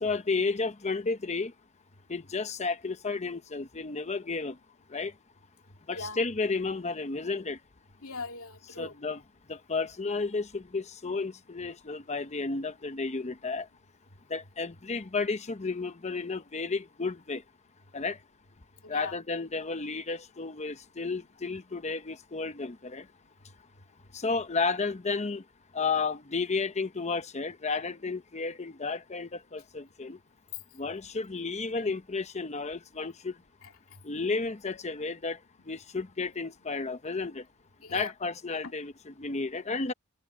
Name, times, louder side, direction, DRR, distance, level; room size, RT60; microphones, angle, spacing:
voice 1, 0.0-1.5 2.1-4.6 4.9-5.1 5.9-7.6 8.8-9.2 9.5-13.7 14.3-17.4 17.9-18.2 18.9-23.1 24.1-25.4 25.7-30.2 30.7-33.4 34.0-35.4 35.7-37.4 37.9-39.9, left 4 dB, 35° left, 0.9 m, -32 dB
voice 2, 8.0-9.0 18.8-19.2 33.6-34.0 37.8-38.1 38.6-38.7, left 3 dB, 80° left, 2.6 m, -41 dB
head